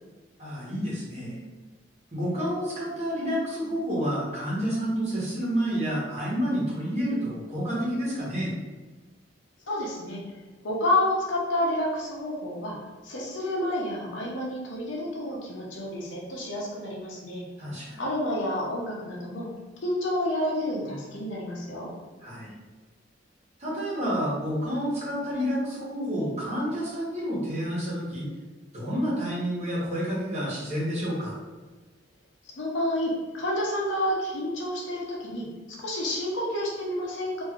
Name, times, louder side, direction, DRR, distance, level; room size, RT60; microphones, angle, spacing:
voice 1, 0.4-1.4 2.1-8.5 17.6-18.0 22.2-22.5 23.6-28.3 28.7-31.4, equal, 40° right, -7 dB, 1.1 m, -29 dB
voice 2, 9.7-10.2 10.6-12.7 13.0-17.4 18.0-19.5 19.8-21.9 32.6-37.4, left 1 dB, 90° left, -3 dB, 0.7 m, -29 dB
3.0 x 2.6 x 2.4 m, 1.2 s
head